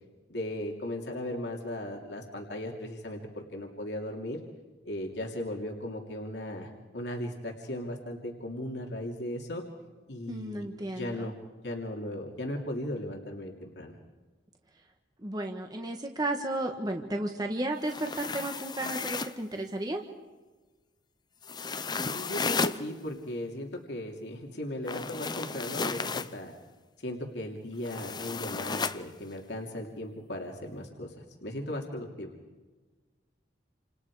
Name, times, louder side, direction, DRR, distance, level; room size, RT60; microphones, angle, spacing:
voice 1, 0.3-4.4 4.8-9.6 10.1-11.3 11.6-13.9 22.0-26.5 27.0-31.1 31.4-32.3, left 1 dB, 75° left, 1 dB, 2.9 m, -37 dB
voice 2, 10.3-11.3 15.2-20.0, right 1 dB, 25° right, 3 dB, 1.4 m, -33 dB
sound 1, 17.8-19.4 21.4-22.8 24.8-26.3 27.8-29.0, left 4 dB, 25° left, 0.7 m, -33 dB
29.0 x 27.5 x 4.9 m, 1.3 s
head